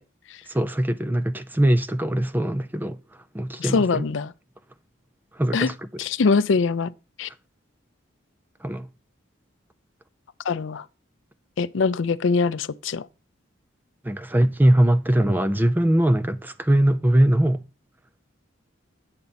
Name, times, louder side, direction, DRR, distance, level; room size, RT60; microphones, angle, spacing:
voice 1, 0.5-4.1 5.3-5.7 8.6-8.9 14.0-17.6, right 1 dB, 10° right, 0.4 m, -21 dB
voice 2, 3.6-4.3 5.5-5.7 6.0-6.9 7.2-7.3 10.5-10.8 11.6-13.1, left 4 dB, 65° left, 0.5 m, -23 dB
8.7 x 7.0 x 4.0 m
head